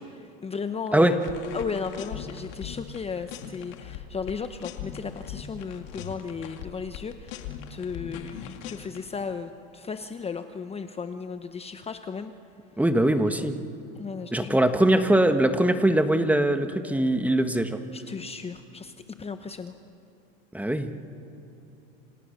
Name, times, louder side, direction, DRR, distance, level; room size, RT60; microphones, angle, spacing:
voice 1, 0.0-12.3 13.9-14.6 17.9-19.7, left 5 dB, 20° left, 8 dB, 1.0 m, -35 dB
sound 1, 1.2-3.0 3.3-9.1, left 9 dB, 70° left, 2.3 m, -40 dB
voice 2, 12.8-13.6 14.3-17.8 20.5-20.9, right 1 dB, 5° right, 8 dB, 1.5 m, -22 dB
29.0 x 26.5 x 6.7 m, 2.7 s
supercardioid pair, 115°, 30 cm